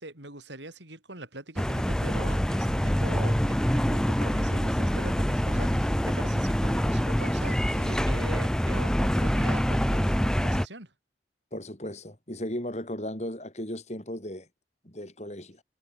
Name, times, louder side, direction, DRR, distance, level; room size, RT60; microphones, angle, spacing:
voice 1, 0.0-10.9, right 2 dB, 75° right, 7.5 m, -42 dB
sound 1, 1.6-10.7, equal, 5° left, 0.6 m, -25 dB
voice 2, 11.5-14.5 14.8-15.6, left 1 dB, 35° left, 4.7 m, -36 dB
head